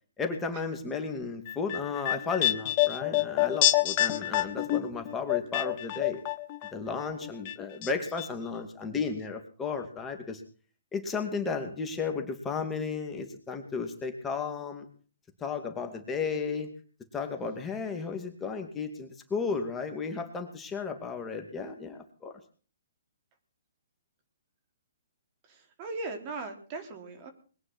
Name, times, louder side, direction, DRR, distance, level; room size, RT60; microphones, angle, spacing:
voice 1, 0.2-6.2 6.7-10.4 10.9-14.9 15.4-16.7 17.1-22.3, left 5 dB, 15° left, 4 dB, 2.5 m, -34 dB
sound 1, 1.5-6.7 7.0-7.9 8.2-8.3, left 15 dB, 40° left, 1.2 m, -27 dB
voice 2, 25.5-27.3, right 3 dB, 35° right, 7 dB, 4.0 m, -38 dB
21.5 x 9.6 x 6.3 m, 0.40 s
hypercardioid pair, 135°, 0 cm